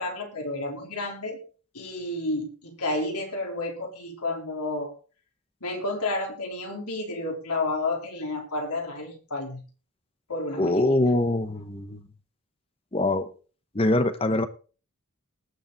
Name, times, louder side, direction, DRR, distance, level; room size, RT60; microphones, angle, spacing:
voice 1, 0.0-1.4 1.7-4.9 5.6-9.6 10.3-11.0, left 2 dB, 90° left, 2 dB, 3.9 m, -31 dB
voice 2, 10.6-12.0 12.9-13.3 13.7-14.5, left 2 dB, 25° left, 11 dB, 0.9 m, -23 dB
19.5 x 7.0 x 4.0 m, 0.36 s
head